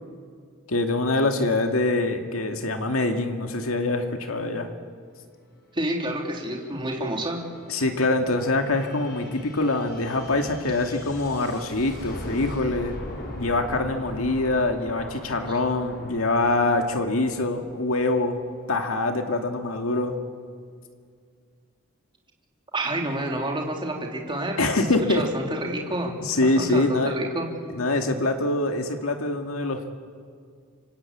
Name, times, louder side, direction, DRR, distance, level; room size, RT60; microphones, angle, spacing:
voice 1, 0.7-4.7 7.7-13.0 13.4-18.4 18.7-20.1 24.6-25.2 26.2-27.1 27.7-29.9, left 2 dB, 90° left, 4 dB, 2.0 m, -24 dB
sound 1, 5.7-19.2, left 1 dB, 50° left, 4.8 m, -41 dB
voice 2, 5.7-7.5 22.7-24.7 25.1-26.1 26.4-27.5, right 1 dB, 25° right, 0 dB, 3.1 m, -29 dB
27.5 x 25.0 x 8.5 m, 2.1 s
head